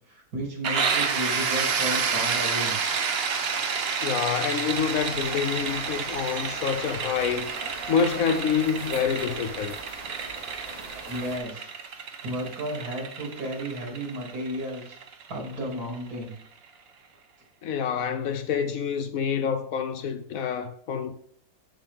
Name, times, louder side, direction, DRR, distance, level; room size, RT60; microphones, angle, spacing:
voice 1, 0.1-2.8 11.1-11.7 12.2-15.0 15.3-16.3, equal, 75° right, 3.1 m, -33 dB
sound 1, 0.6-16.2, right 6 dB, 50° right, 0.8 m, -30 dB
voice 2, 4.0-7.5 7.9-9.8 17.6-21.1, left 7 dB, 70° left, 1.0 m, -27 dB
sound 2, 4.7-11.4, right 2 dB, 30° right, 1.1 m, -43 dB
7.4 x 7.1 x 3.5 m
omnidirectional pair, 1.7 m